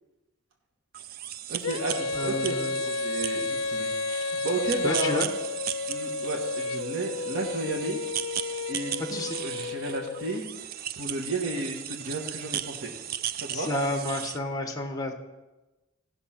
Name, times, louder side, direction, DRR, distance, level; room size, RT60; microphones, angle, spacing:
sound 1, 0.9-14.4, right 11 dB, 50° right, 0.4 m, -36 dB
voice 1, 1.5-3.9 4.2-5.2 5.9-8.0 8.7-10.5 11.0-12.9 13.4-13.7, right 2 dB, 75° right, 0 dB, 1.3 m, -33 dB
Female singing, 1.6-10.4, left 4 dB, 85° left, 0.4 m, -32 dB
voice 2, 2.1-2.8 4.8-5.3 9.1-9.4 13.5-15.1, left 1 dB, 20° left, 5 dB, 1.2 m, -30 dB
16.0 x 5.9 x 5.8 m, 1.1 s
head